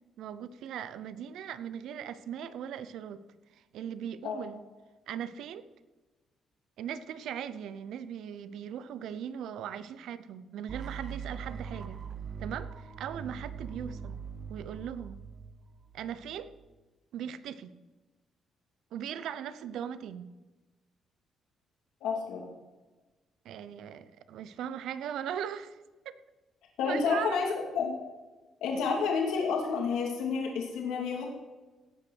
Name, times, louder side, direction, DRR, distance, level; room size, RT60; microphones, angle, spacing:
voice 1, 0.2-3.2 3.5-4.6 5.1-5.7 6.8-12.0 12.4-14.2 14.5-15.2 15.9-16.5 17.1-17.7 18.9-20.3 23.4-26.1 26.8-27.4, right 9 dB, 80° right, 14 dB, 0.7 m, -39 dB
sound 1, 10.7-16.6, right 6 dB, 50° right, 0.8 m, -42 dB
voice 2, 22.0-22.4 26.8-27.9 28.6-31.2, left 5 dB, 90° left, 0 dB, 2.4 m, -30 dB
17.0 x 5.9 x 6.3 m, 1.2 s
cardioid pair, 90°, 0 cm